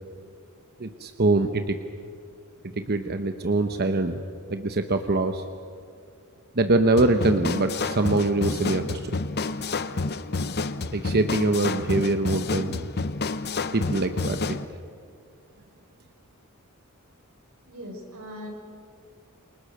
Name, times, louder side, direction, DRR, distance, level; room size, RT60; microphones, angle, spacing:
voice 1, 0.8-1.8 2.6-4.2 4.5-5.4 6.5-9.2 10.9-12.9 13.7-14.6, right 2 dB, 45° right, 7 dB, 0.9 m, -24 dB
sound 1, 7.0-14.6, left 3 dB, 45° left, 0.8 m, -29 dB
voice 2, 17.7-18.5, equal, 80° right, 0 dB, 6.5 m, -39 dB
29.0 x 24.0 x 6.6 m, 2.3 s
head